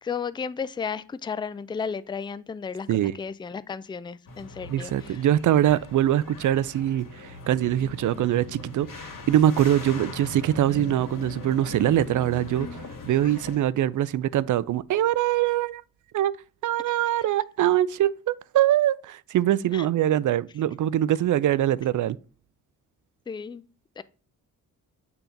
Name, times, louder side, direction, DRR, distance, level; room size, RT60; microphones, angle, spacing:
voice 1, 0.0-5.2 19.7-19.9 23.3-23.6 24.0-24.1, left 6 dB, 15° left, 0.4 m, -34 dB
sound 1, 4.3-13.6, left 3 dB, 60° left, 1.8 m, -40 dB
voice 2, 4.7-15.8 16.1-16.3 16.6-22.2, right 12 dB, 55° right, 0.4 m, -23 dB
6.9 x 2.9 x 5.2 m
supercardioid pair, 60°, 36 cm